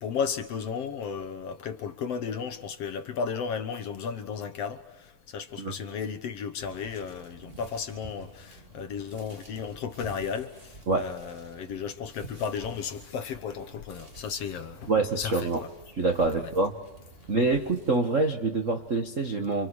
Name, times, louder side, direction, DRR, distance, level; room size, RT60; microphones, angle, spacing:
voice 1, 0.0-14.9 15.2-15.7 16.4-16.5, left 6 dB, 60° left, 2.0 m, -34 dB
sound 1, 6.6-18.0, right 2 dB, 20° right, 2.0 m, -50 dB
voice 2, 14.9-15.6 15.9-16.8 17.3-19.7, right 3 dB, 55° right, 0.8 m, -26 dB
29.5 x 28.0 x 4.8 m
omnidirectional pair, 3.7 m